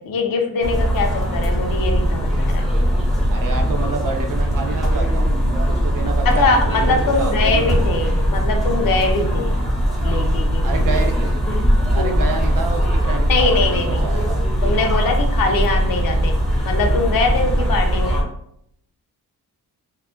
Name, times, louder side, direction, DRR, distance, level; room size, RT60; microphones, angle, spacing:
voice 1, 0.0-2.7 6.3-9.5 10.0-10.7 11.8-12.2 13.3-14.1 14.6-18.2, left 3 dB, 65° left, 4 dB, 0.5 m, -22 dB
sound 1, 0.6-18.2, equal, ahead, 0.7 m, -20 dB
sound 2, 1.2-10.9, left 1 dB, 25° right, 0.8 m, -39 dB
voice 2, 3.3-5.2 5.7-7.7 10.6-11.4 11.9-14.4, right 4 dB, 60° right, 3 dB, 0.5 m, -28 dB
2.3 x 2.1 x 3.0 m, 0.70 s
wide cardioid pair, 135°, 37 cm